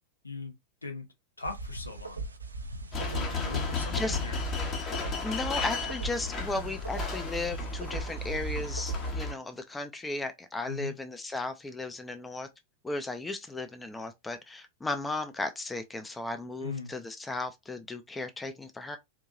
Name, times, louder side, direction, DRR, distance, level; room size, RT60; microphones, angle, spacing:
voice 1, 0.2-0.5 0.8-1.1 1.4-2.2 3.0-4.4 10.7-10.9 16.6-16.9, left 4 dB, 80° left, 0.9 m, -39 dB
sound 1, 1.4-9.1, right 2 dB, 80° right, 0.5 m, -39 dB
sound 2, 2.9-9.3, left 3 dB, 30° left, 1.1 m, -34 dB
voice 2, 4.8-12.5 12.8-19.0, left 2 dB, 10° left, 0.6 m, -35 dB
4.4 x 2.7 x 2.5 m
figure-of-eight pair, 90°, 0 cm